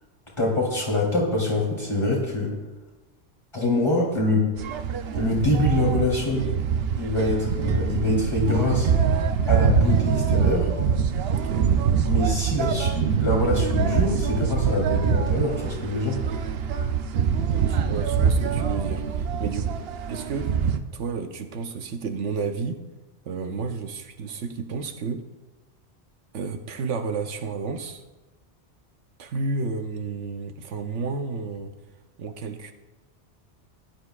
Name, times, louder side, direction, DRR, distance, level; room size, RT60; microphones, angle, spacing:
voice 1, 0.4-2.5 3.5-4.5 5.2-6.5 6.9-8.9 9.5-10.7 12.0-16.2, left 2 dB, 25° left, -4 dB, 3.3 m, -24 dB
sound 1, 4.6-20.8, right 7 dB, 65° right, 0.8 m, -24 dB
voice 2, 11.2-11.7 17.4-19.7 20.1-22.8 23.3-25.2 26.3-28.0 29.2-31.7 32.2-32.7, right 4 dB, 85° right, 6 dB, 1.1 m, -32 dB
17.5 x 10.5 x 2.4 m, 1.2 s
omnidirectional pair, 1.2 m